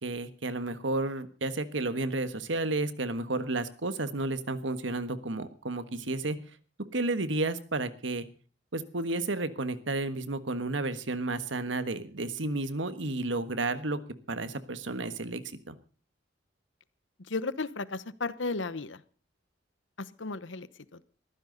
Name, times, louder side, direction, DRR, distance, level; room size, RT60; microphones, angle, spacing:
voice 1, 0.0-6.4 6.9-8.2 8.7-14.0 14.3-15.8, right 2 dB, 80° right, 12 dB, 1.5 m, -32 dB
voice 2, 17.2-19.0 20.0-21.0, left 3 dB, 80° left, 16 dB, 1.0 m, -35 dB
22.0 x 15.0 x 4.0 m, 0.38 s
head